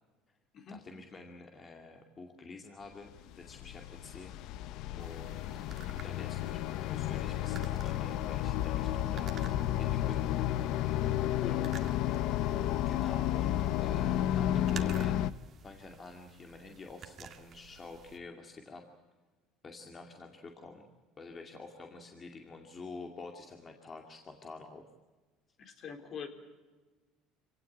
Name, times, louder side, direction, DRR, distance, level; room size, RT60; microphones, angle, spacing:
voice 1, 0.7-4.3 4.9-5.4 5.9-6.6 6.8-9.4 9.8-10.2 11.4-11.5 12.9-15.2 15.6-18.8 19.6-20.8 21.2-24.9, left 3 dB, 30° left, 3 dB, 2.4 m, -48 dB
sound 1, 3.2-15.3, left 12 dB, 65° left, 0.7 m, -32 dB
sound 2, 5.0-18.2, right 7 dB, 45° right, 2.0 m, -53 dB
voice 2, 25.6-26.3, left 7 dB, 50° left, 5 dB, 3.8 m, -42 dB
26.0 x 17.5 x 8.6 m, 1.3 s
supercardioid pair, 105°, 0 cm